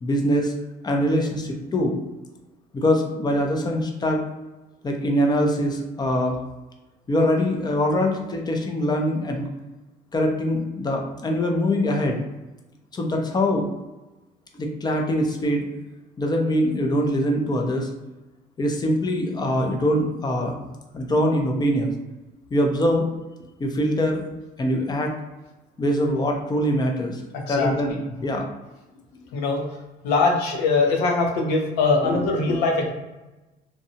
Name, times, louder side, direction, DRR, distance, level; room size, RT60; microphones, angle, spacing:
voice 1, 0.0-0.5 0.8-1.9 2.7-4.2 4.8-6.4 7.1-9.5 10.1-12.2 12.9-13.7 14.6-15.6 16.2-17.9 18.6-20.6 20.9-21.9 22.5-23.1 23.6-24.2 24.6-25.1 25.8-27.2 27.5-28.5, equal, 25° left, 1 dB, 0.5 m, -23 dB
voice 2, 27.3-27.7 29.3-29.8 30.0-32.9, left 3 dB, 85° left, 1 dB, 0.7 m, -22 dB
2.7 x 2.2 x 2.7 m, 1.1 s
cardioid pair, 110°, 17 cm